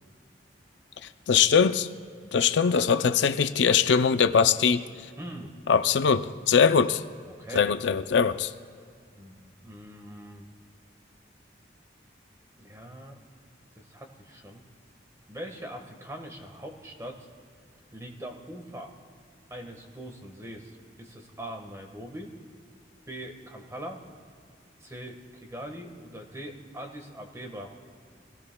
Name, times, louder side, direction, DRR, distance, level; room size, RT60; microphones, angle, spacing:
voice 1, 1.3-1.9 2.3-4.8 5.7-7.0 7.5-8.5, left 6 dB, 75° left, 0.5 m, -21 dB
voice 2, 5.2-5.5 7.3-7.7 9.2-10.5 12.6-13.2 13.8-14.6 15.3-17.3 17.9-18.9 19.5-22.4 23.1-24.0 24.8-27.7, right 1 dB, 15° right, 1.5 m, -42 dB
26.0 x 17.5 x 2.3 m
head